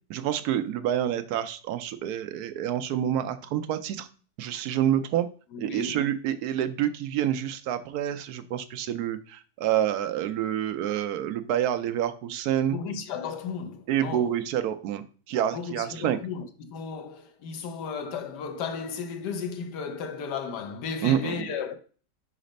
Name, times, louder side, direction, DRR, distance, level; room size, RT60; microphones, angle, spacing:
voice 1, 0.1-4.1 4.4-5.3 5.6-12.8 13.9-16.2 21.0-21.5, right 10 dB, 75° right, 1.0 m, -28 dB
voice 2, 5.5-6.0 12.7-14.3 15.5-21.8, left 6 dB, 80° left, 1.3 m, -34 dB
5.0 x 4.1 x 5.1 m
omnidirectional pair, 1.8 m